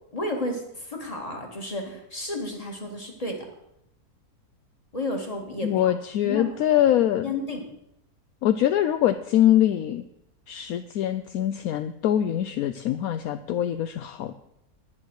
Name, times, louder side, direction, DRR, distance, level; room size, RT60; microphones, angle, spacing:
voice 1, 0.1-3.5 4.9-5.8 6.2-6.8 7.2-7.7, left 1 dB, 25° left, 2 dB, 2.2 m, -32 dB
voice 2, 5.6-7.3 8.4-10.0 10.5-14.3, left 11 dB, 75° left, 11 dB, 1.0 m, -23 dB
10.5 x 9.9 x 6.4 m, 0.81 s
omnidirectional pair, 1.6 m